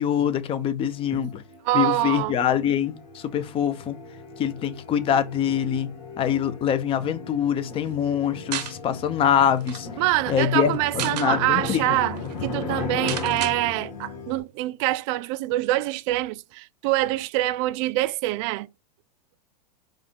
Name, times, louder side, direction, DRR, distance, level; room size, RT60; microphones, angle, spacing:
voice 1, 0.0-1.4 1.7-4.0 4.4-9.9 10.3-11.8, left 9 dB, 25° left, 0.6 m, -24 dB
sound 1, 0.9-14.4, left 4 dB, 55° left, 2.0 m, -36 dB
voice 2, 1.6-2.4 10.0-12.2 12.4-18.7, right 17 dB, 45° right, 0.4 m, -25 dB
sound 2, 8.5-8.8 9.2-9.3 9.6-9.8 10.7-11.3 11.8-11.9 12.2-12.3 13.1-13.6, right 10 dB, 75° right, 0.8 m, -32 dB
4.9 x 2.4 x 4.5 m
hypercardioid pair, 120°, 21 cm